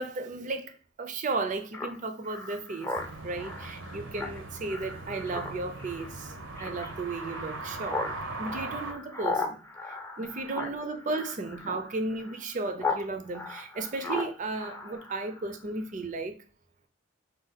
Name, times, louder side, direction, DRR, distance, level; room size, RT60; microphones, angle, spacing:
voice 1, 0.0-2.9 3.2-6.3 6.6-8.0 8.4-9.6 9.9-16.4, right 3 dB, 40° right, 0.5 m, -34 dB
Speech synthesizer, 1.7-13.0 13.3-15.6, left 3 dB, 10° left, 0.5 m, -37 dB
sound 1, 2.9-8.9, right 3 dB, 65° right, 0.7 m, -40 dB
5.2 x 2.2 x 3.9 m
head